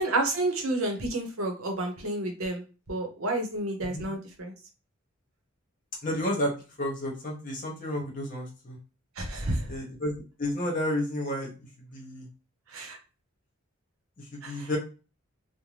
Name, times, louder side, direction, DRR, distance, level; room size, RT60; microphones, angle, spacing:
voice 1, 0.0-4.5 9.2-9.7 12.7-13.0 14.4-14.8, right 2 dB, 80° right, 4 dB, 0.7 m, -30 dB
voice 2, 6.0-6.5 6.8-8.8 9.7-11.5 11.9-12.3 14.3-14.8, left 1 dB, 40° left, -1 dB, 0.9 m, -31 dB
2.6 x 2.1 x 3.1 m, 0.33 s
head